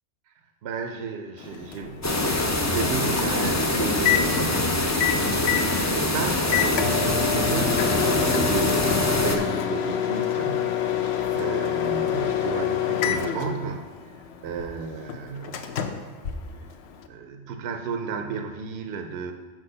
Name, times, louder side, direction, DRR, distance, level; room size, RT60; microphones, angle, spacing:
voice 1, 0.6-5.2 5.9-11.0 11.3-14.2 14.4-16.1 17.1-19.3, right 5 dB, 70° right, 5 dB, 0.8 m, -33 dB
Microwave oven, 1.4-17.1, left 9 dB, 70° left, 0.8 m, -28 dB
sound 1, 2.0-9.4, left 1 dB, 25° left, 0.3 m, -24 dB
6.2 x 4.6 x 6.6 m, 1.4 s
omnidirectional pair, 1.2 m